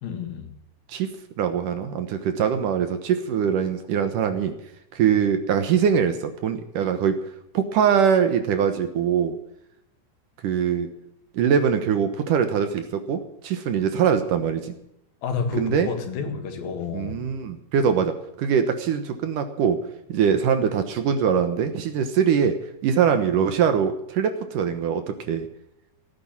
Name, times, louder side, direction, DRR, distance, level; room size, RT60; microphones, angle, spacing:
voice 1, 0.0-0.5 15.2-17.2, left 5 dB, 70° left, 6 dB, 3.6 m, -30 dB
voice 2, 1.4-4.5 4.9-7.2 7.5-9.4 10.4-10.9 11.3-14.7 15.6-15.9 16.9-19.8 20.1-22.6 22.8-25.5, right 7 dB, 65° right, 8 dB, 2.5 m, -22 dB
17.0 x 9.8 x 7.3 m, 0.80 s
omnidirectional pair, 4.4 m